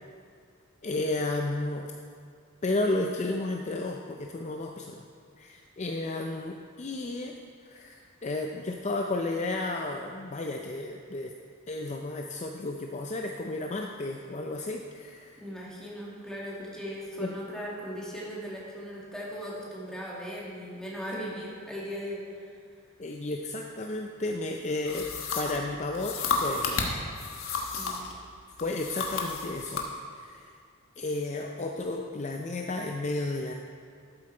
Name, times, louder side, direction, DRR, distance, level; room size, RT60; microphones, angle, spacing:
voice 1, 0.8-1.9 2.6-5.0 5.4-7.4 7.6-11.3 11.7-15.4 17.2-17.3 23.0-25.1 25.4-26.9 28.6-29.9 30.1-30.5 31.0-33.5, left 2 dB, 35° left, 2 dB, 0.5 m, -32 dB
voice 2, 15.4-22.5 27.7-28.0, equal, 5° left, -5 dB, 2.1 m, -38 dB
sound 1, 24.9-28.2 28.6-29.9, left 4 dB, 80° left, 1.2 m, -32 dB
12.5 x 7.9 x 4.4 m, 2.2 s
head